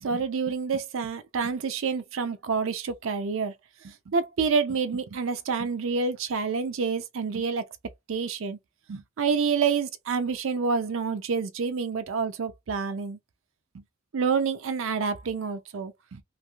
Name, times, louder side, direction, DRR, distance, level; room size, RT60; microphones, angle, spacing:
voice 1, 0.0-3.5 3.8-7.7 8.1-8.6 8.9-13.2 13.7-13.8 14.1-16.2, right 5 dB, 80° right, 0.5 m, -28 dB
3.2 x 2.5 x 2.3 m
head